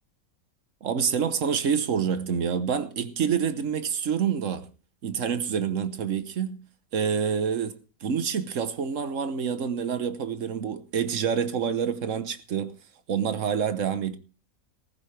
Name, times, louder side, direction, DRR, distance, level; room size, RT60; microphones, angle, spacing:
voice 1, 0.8-4.7 5.0-6.6 6.9-7.8 8.0-12.7 13.1-14.2, right 7 dB, 60° right, 1.3 m, -27 dB
15.0 x 15.0 x 3.3 m
omnidirectional pair, 1.5 m